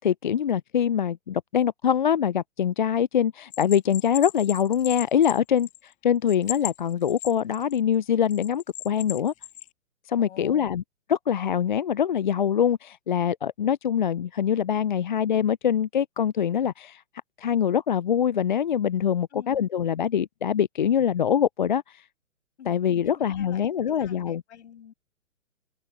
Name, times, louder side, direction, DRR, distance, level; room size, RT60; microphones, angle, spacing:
voice 1, 0.0-9.3 10.1-10.8 11.1-17.0 17.4-22.0 22.7-24.4, left 8 dB, 40° left, 0.4 m, -24 dB
Bell, 3.5-5.9 6.3-7.8 8.3-9.7, left 13 dB, 20° left, 2.4 m, -36 dB
voice 2, 10.1-10.7 19.3-19.6 22.6-24.9, left 9 dB, 55° left, 6.4 m, -47 dB
open air
figure-of-eight pair, 130°, 41 cm